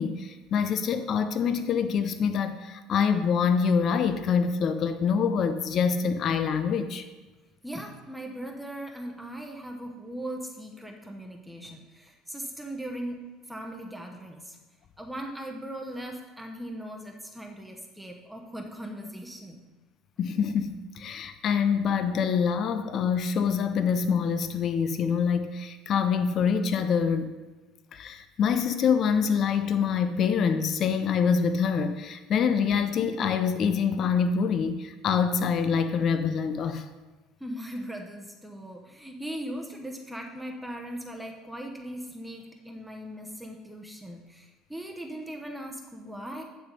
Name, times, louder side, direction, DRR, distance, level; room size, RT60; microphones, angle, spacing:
voice 1, 0.0-7.1 20.2-27.3 27.9-36.8, left 6 dB, 50° left, 10 dB, 0.5 m, -25 dB
voice 2, 7.6-13.2 13.5-14.6 15.0-19.6 37.4-46.4, right 1 dB, 5° right, 1 dB, 0.9 m, -39 dB
9.9 x 3.5 x 5.3 m, 1.2 s
supercardioid pair, 95°, 0 cm